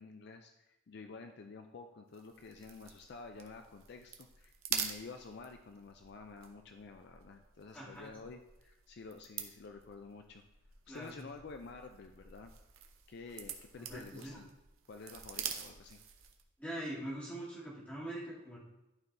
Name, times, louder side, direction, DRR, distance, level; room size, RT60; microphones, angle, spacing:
voice 1, 0.0-10.4 10.9-12.5 13.1-14.5 14.9-16.0, left 4 dB, 50° left, 5 dB, 0.4 m, -50 dB
sound 1, 2.1-16.5, right 8 dB, 75° right, 0.7 m, -46 dB
voice 2, 7.7-8.1 10.9-11.2 13.8-14.4 16.6-18.6, right 1 dB, 5° left, -9 dB, 2.1 m, -43 dB
11.5 x 4.5 x 2.6 m, 0.95 s
head